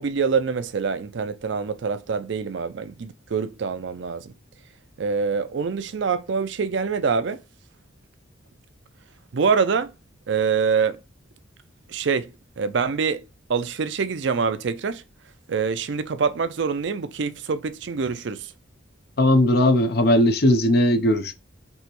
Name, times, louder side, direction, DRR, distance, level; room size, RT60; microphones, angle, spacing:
voice 1, 0.0-4.3 5.0-7.4 9.3-9.9 10.3-11.0 11.9-15.0 15.5-18.5, right 5 dB, 60° right, 0.4 m, -25 dB
voice 2, 19.2-21.3, left 1 dB, 50° left, 0.7 m, -18 dB
5.4 x 2.9 x 3.0 m
head